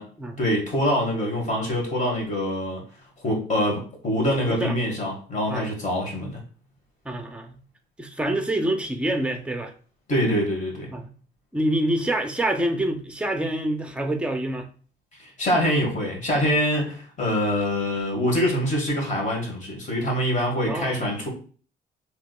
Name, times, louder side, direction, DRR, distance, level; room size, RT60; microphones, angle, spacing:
voice 1, 0.4-2.8 3.2-6.4 10.1-10.9 15.2-21.3, equal, 40° left, 0 dB, 1.5 m, -24 dB
voice 2, 4.4-4.7 5.5-5.7 7.0-7.6 8.0-9.7 10.9-11.1 11.5-14.7 20.7-21.0, right 1 dB, 5° right, 5 dB, 0.6 m, -26 dB
3.4 x 3.0 x 2.2 m, 0.42 s
cardioid pair, 90°, 20 cm